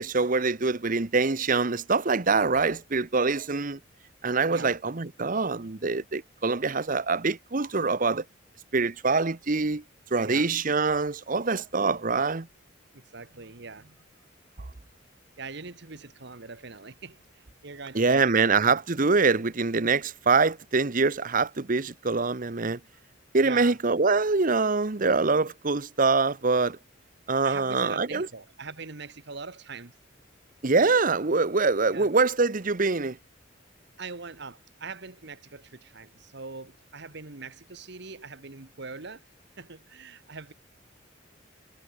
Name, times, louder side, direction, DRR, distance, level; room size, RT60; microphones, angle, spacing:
voice 1, 0.0-3.8 4.2-8.2 8.7-9.8 10.1-12.5 17.9-22.8 23.3-26.8 27.3-28.3 30.6-33.2, right 4 dB, 40° right, 0.9 m, -24 dB
voice 2, 4.4-4.8 10.2-10.5 12.9-14.0 15.4-18.6 23.4-23.8 27.4-29.9 31.9-32.1 34.0-39.2 39.6-40.5, right 4 dB, 60° right, 1.6 m, -42 dB
head